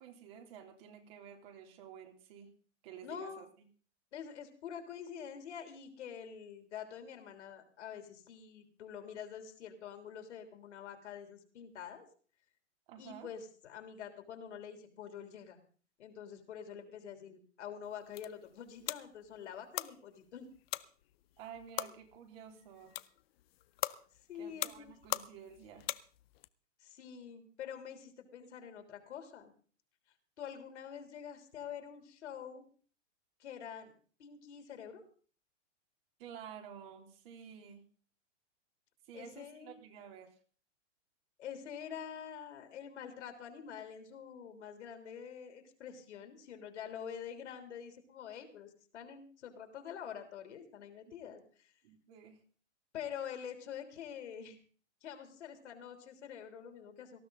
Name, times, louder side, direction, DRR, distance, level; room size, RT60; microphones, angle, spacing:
voice 1, 0.0-2.5 2.8-3.4 12.9-13.3 21.4-23.0 24.3-25.9 36.2-37.9 39.1-40.4 51.8-52.4, right 8 dB, 50° right, 3 dB, 3.3 m, -51 dB
voice 2, 3.0-3.4 4.1-12.0 13.0-15.6 16.0-20.5 21.8-21.9 24.3-25.0 26.8-29.5 30.4-32.7 33.4-33.9 34.2-35.0 39.1-39.8 41.4-51.7 52.9-54.6 55.0-57.2, left 8 dB, 70° left, 6 dB, 3.3 m, -46 dB
sound 1, 17.8-26.5, left 16 dB, 55° left, 0.8 m, -43 dB
19.0 x 13.5 x 3.9 m, 0.42 s
hypercardioid pair, 120°, 37 cm